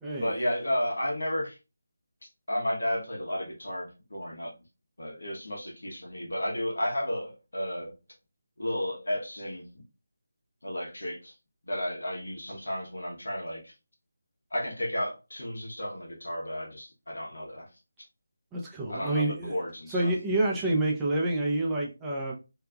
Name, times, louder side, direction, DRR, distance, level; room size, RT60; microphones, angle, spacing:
voice 1, 0.2-1.6 2.5-4.5 5.0-7.9 8.6-9.8 10.6-11.3 11.6-13.7 14.5-17.7 18.9-20.1, equal, 70° left, 1.2 m, -33 dB
voice 2, 18.5-19.6 19.9-22.3, right 2 dB, 10° right, 0.8 m, -28 dB
3.3 x 2.9 x 2.4 m
figure-of-eight pair, 155°, 0 cm